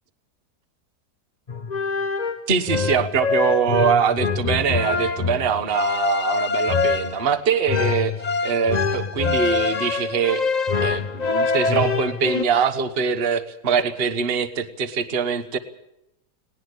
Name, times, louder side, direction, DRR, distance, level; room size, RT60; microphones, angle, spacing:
sound 1, 1.5-12.4, left 4 dB, 30° left, 0.8 m, -24 dB
voice 1, 2.5-8.1 8.4-10.5 10.8-15.6, right 6 dB, 40° right, 10 dB, 1.3 m, -23 dB
19.5 x 19.0 x 8.2 m, 0.85 s
omnidirectional pair, 1.8 m